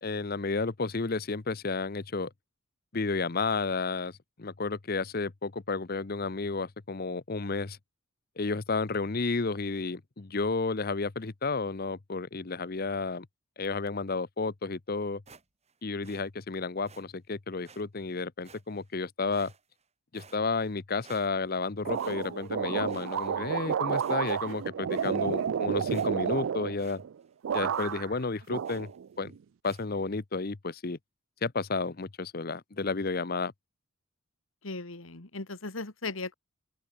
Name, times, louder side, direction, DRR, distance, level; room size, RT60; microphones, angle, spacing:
voice 1, 0.0-2.3 2.9-4.1 4.4-7.8 8.4-13.3 13.6-15.2 15.8-19.5 20.1-27.0 27.5-28.9 29.2-29.3 29.6-31.0 31.4-33.5, left 3 dB, 45° left, 0.8 m, -32 dB
sound 1, 15.3-15.8 16.0-16.3 16.9-17.0 17.6-17.8 18.4-18.9 19.3-19.8 20.1-20.7 21.0-21.6 21.9-22.5 22.9-23.6 23.9-24.5 24.9-25.2 25.6-25.7 25.9-26.4 26.8-27.0 27.3-27.4 27.7-28.0 28.6-29.0 29.6-29.9, right 5 dB, 30° right, 7.7 m, -56 dB
sound 2, 21.8-27.1 27.4-28.2 28.5-29.4, right 7 dB, 70° right, 0.4 m, -31 dB
voice 2, 34.6-36.3, left 3 dB, 75° left, 2.2 m, -37 dB
open air
head